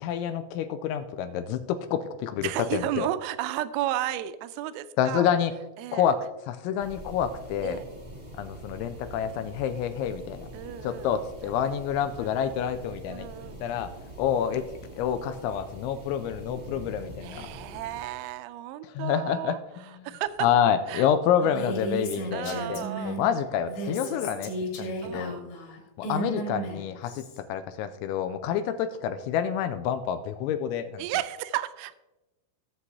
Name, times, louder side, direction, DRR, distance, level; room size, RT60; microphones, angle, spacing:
voice 1, 0.0-3.1 5.0-5.5 5.9-6.2 6.5-7.8 8.4-10.5 10.8-13.3 13.6-13.9 14.2-14.6 15.0-17.5 18.8-19.6 20.4-24.5 24.8-25.3 26.0-27.2 27.5-31.0, left 9 dB, 85° left, 10 dB, 2.8 m, -28 dB
voice 2, 2.4-5.3 5.8-6.1 7.6-7.8 10.5-11.1 11.4-11.7 12.2-12.3 13.1-13.6 17.2-20.5 20.9-21.1 21.4-21.5 22.3-23.2 25.0-25.4 31.0-31.9, right 13 dB, 85° right, 12 dB, 3.0 m, -33 dB
sound 1, 6.8-18.1, right 1 dB, 60° right, 0.5 m, -44 dB
Female speech woman speaking, 21.4-23.3 23.6-27.4, right 1 dB, 65° left, 4.5 m, -34 dB
16.5 x 7.8 x 2.8 m, 1.0 s
omnidirectional pair, 5.7 m